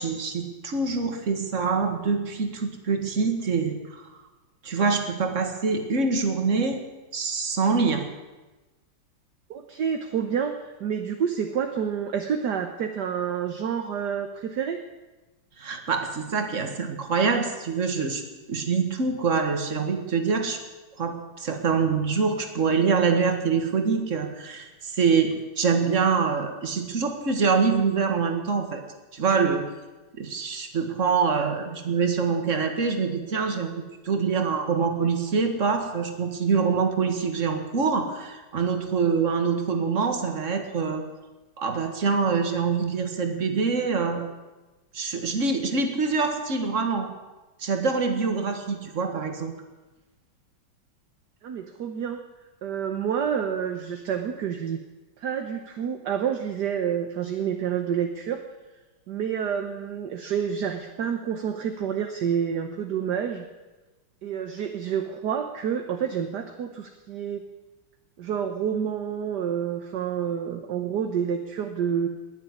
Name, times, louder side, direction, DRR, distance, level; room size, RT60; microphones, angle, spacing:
voice 1, 0.0-4.1 4.6-6.8 7.1-8.1 15.6-18.2 18.5-20.6 21.0-28.8 29.1-29.6 30.2-41.0 41.6-44.3 44.9-47.1 47.6-49.5, right 5 dB, 35° right, 6 dB, 1.9 m, -25 dB
voice 2, 9.5-10.5 10.8-14.8 51.4-52.2 52.6-54.8 55.2-58.4 59.1-63.4 64.2-67.4 68.2-72.1, right 8 dB, 60° right, 6 dB, 1.4 m, -28 dB
20.0 x 7.4 x 9.6 m, 1.1 s
omnidirectional pair, 2.4 m